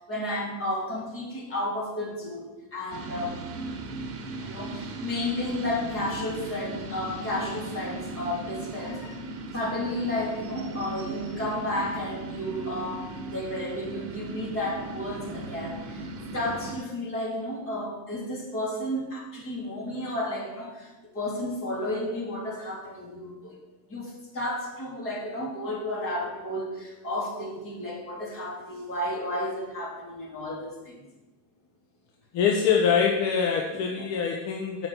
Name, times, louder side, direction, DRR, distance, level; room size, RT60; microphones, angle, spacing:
voice 1, 0.1-3.4 4.4-9.0 9.5-16.1 16.3-23.6 23.9-31.0 33.7-34.1, left 1 dB, 25° left, -2 dB, 3.4 m, -32 dB
sound 1, 2.9-16.7, right 2 dB, 30° right, 1.6 m, -37 dB
voice 2, 32.3-34.9, left 6 dB, 50° left, 1 dB, 1.3 m, -24 dB
8.6 x 6.5 x 6.1 m, 1.1 s
supercardioid pair, 130°, 49 cm